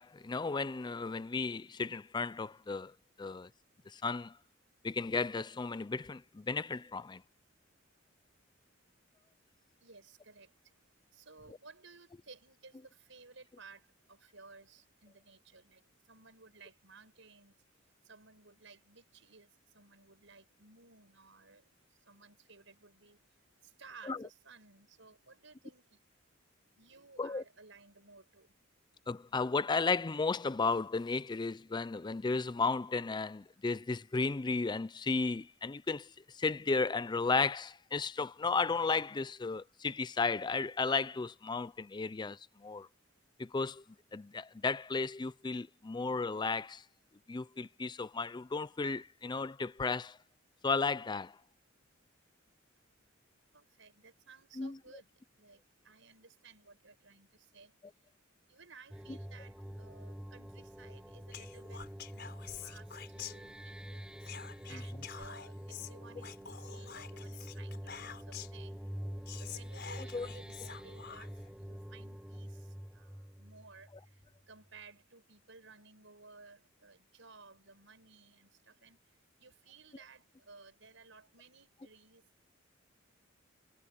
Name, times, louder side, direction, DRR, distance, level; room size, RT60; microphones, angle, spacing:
voice 1, 0.0-2.9 3.2-3.5 3.9-4.3 4.8-7.2 24.1-24.2 27.2-27.4 29.1-42.9 43.4-43.8 44.1-46.8 47.3-50.2 50.6-51.4 54.6-54.8 70.1-70.3, left 4 dB, 20° left, 0.4 m, -34 dB
voice 2, 9.8-10.5 11.1-17.5 18.0-21.6 22.1-23.2 23.6-26.0 26.8-28.5 53.5-55.1 55.4-57.7 58.5-64.2 64.6-68.9 69.4-74.2 74.5-79.0 79.4-82.5, right 4 dB, 65° right, 7.8 m, -58 dB
sound 1, 58.9-74.4, equal, 5° right, 1.2 m, -46 dB
Whispering, 61.3-63.8 64.2-68.6 69.0-69.1 69.3-71.5, left 9 dB, 55° left, 4.8 m, -48 dB
head